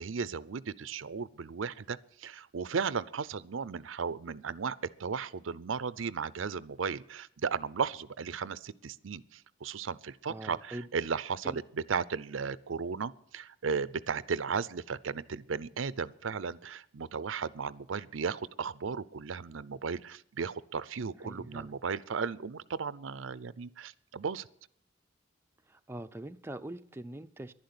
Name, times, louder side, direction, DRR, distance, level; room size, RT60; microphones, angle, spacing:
voice 1, 0.0-24.5, right 5 dB, 85° right, 0.5 m, -35 dB
voice 2, 10.3-10.9 11.4-11.6 21.2-21.7 25.7-27.5, right 1 dB, 10° right, 0.5 m, -43 dB
11.0 x 10.5 x 9.6 m
head